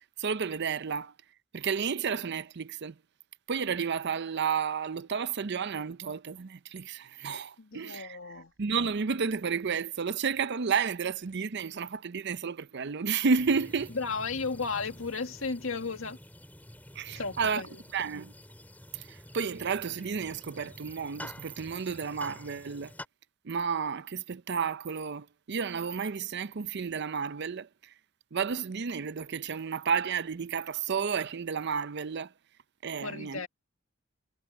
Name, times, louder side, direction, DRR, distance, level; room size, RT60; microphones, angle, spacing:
voice 1, 0.2-1.1 1.5-3.0 3.5-13.9 17.0-17.6 17.9-18.3 18.9-22.9 23.4-27.9 28.3-32.3 32.8-33.4, right 6 dB, 55° right, 0.6 m, -32 dB
voice 2, 7.6-8.5 13.9-16.2 17.2-17.8 33.0-33.5, left 4 dB, 70° left, 2.0 m, -34 dB
sound 1, 13.4-23.1, left 1 dB, 10° left, 2.6 m, -48 dB
head